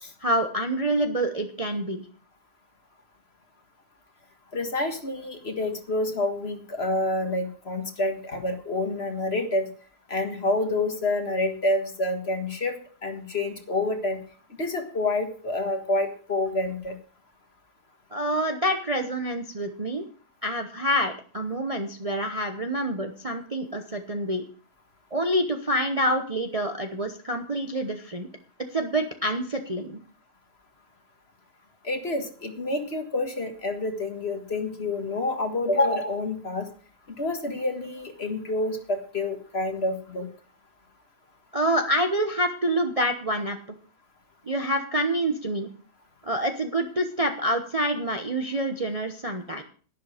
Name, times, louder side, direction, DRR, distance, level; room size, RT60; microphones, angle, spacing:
voice 1, 0.2-2.0 18.1-20.0 20.4-24.4 25.1-28.3 28.7-30.0 41.5-43.8 44.5-45.7 46.2-49.6, right 1 dB, 25° right, 5 dB, 0.8 m, -27 dB
voice 2, 4.5-9.7 10.1-12.8 13.0-14.2 14.6-17.0 31.8-36.7 37.2-40.3, left 2 dB, 40° left, 6 dB, 1.8 m, -28 dB
11.5 x 11.0 x 5.0 m, 0.42 s
omnidirectional pair, 1.8 m